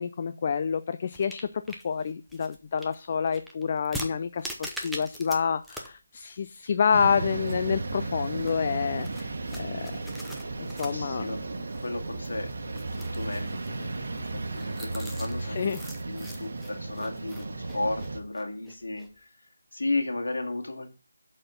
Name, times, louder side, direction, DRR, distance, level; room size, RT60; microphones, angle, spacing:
voice 1, 0.0-10.0 10.6-11.4 15.4-15.8, left 6 dB, 35° left, 0.3 m, -28 dB
sound 1, 1.1-5.4 5.6-5.9 6.2-6.3 6.7-7.9 8.2-19.1, equal, ahead, 0.8 m, -43 dB
sound 2, 6.9-18.2, right 3 dB, 55° right, 1.2 m, -34 dB
voice 2, 10.9-11.4 11.8-12.8 13.1-15.6 16.1-19.3 19.7-20.9, left 2 dB, 70° left, 2.1 m, -34 dB
7.7 x 4.3 x 5.7 m
figure-of-eight pair, 160°, 0 cm